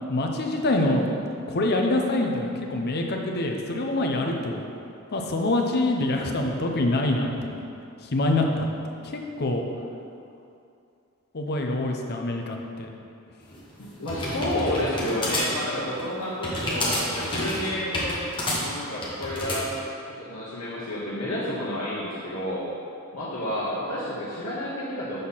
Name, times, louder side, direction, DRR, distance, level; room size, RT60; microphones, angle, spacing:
voice 1, 0.1-1.1 1.5-4.6 5.1-7.6 8.0-8.7 9.0-9.6 11.3-12.9, left 2 dB, 50° left, 2 dB, 0.7 m, -25 dB
sound 1, 13.5-19.6, left 1 dB, 25° left, 1.3 m, -29 dB
voice 2, 13.8-18.2 18.6-19.7 20.3-22.6 23.1-25.2, left 1 dB, 75° left, -9 dB, 1.2 m, -30 dB
6.7 x 4.2 x 5.6 m, 2.5 s
head